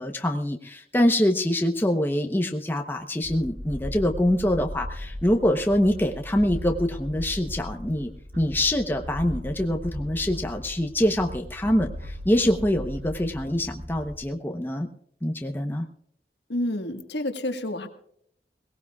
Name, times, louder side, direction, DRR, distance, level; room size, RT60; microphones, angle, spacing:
voice 1, 0.0-14.9 15.2-15.9, left 1 dB, 10° left, 4 dB, 0.8 m, -25 dB
sound 1, 3.2-14.2, equal, 80° right, 2.6 m, -37 dB
voice 2, 16.5-17.9, left 1 dB, 75° left, 6 dB, 1.5 m, -29 dB
22.0 x 18.0 x 2.4 m, 0.68 s
head